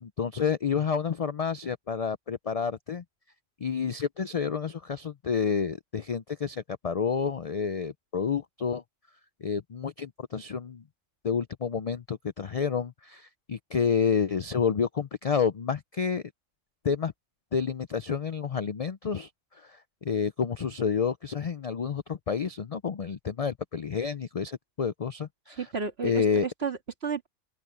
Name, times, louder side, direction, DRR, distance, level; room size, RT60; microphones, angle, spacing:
voice 1, 0.0-3.0 3.6-8.8 9.4-10.8 11.2-16.2 16.8-17.1 17.5-19.3 19.6-25.6 26.0-26.5, left 6 dB, 70° left, 0.3 m, -29 dB
voice 2, 25.6-27.3, right 5 dB, 50° right, 2.1 m, -32 dB
open air
omnidirectional pair, 1.4 m